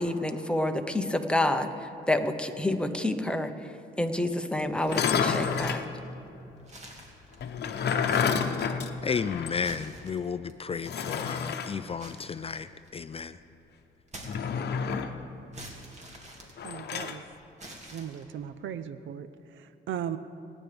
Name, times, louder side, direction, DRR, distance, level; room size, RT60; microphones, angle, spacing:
voice 1, 0.0-3.5 4.0-5.8, left 1 dB, 5° left, 6 dB, 0.9 m, -28 dB
sound 1, 4.8-5.9 7.4-9.7 10.0-10.1 10.8-11.7 14.2-15.2 16.6-17.2, left 6 dB, 55° left, 0.9 m, -29 dB
sound 2, 4.9-5.5 6.0-6.1 6.6-7.6 8.0-8.6 9.5-10.5 12.0-13.0 14.1-14.9 15.5-17.1 17.6-18.5, right 1 dB, 35° right, 2.3 m, -46 dB
voice 2, 9.0-13.4, left 6 dB, 30° left, 12 dB, 0.4 m, -33 dB
voice 3, 16.6-17.2 17.9-19.3 19.9-20.2, right 9 dB, 75° right, 13 dB, 0.6 m, -36 dB
27.5 x 9.9 x 3.5 m, 2.7 s
cardioid pair, 90°, 20 cm